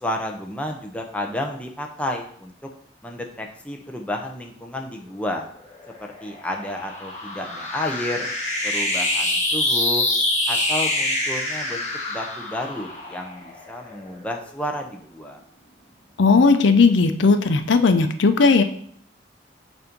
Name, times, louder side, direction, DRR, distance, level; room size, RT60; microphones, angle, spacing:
voice 1, 0.0-2.5 3.0-5.4 6.2-8.3 8.6-10.1 10.5-15.4, left 1 dB, 5° left, 1 dB, 0.6 m, -31 dB
sound 1, 5.6-14.3, left 1 dB, 40° left, 1.5 m, -26 dB
voice 2, 16.2-18.6, left 4 dB, 85° left, 9 dB, 0.5 m, -16 dB
7.0 x 2.6 x 5.1 m, 0.62 s
head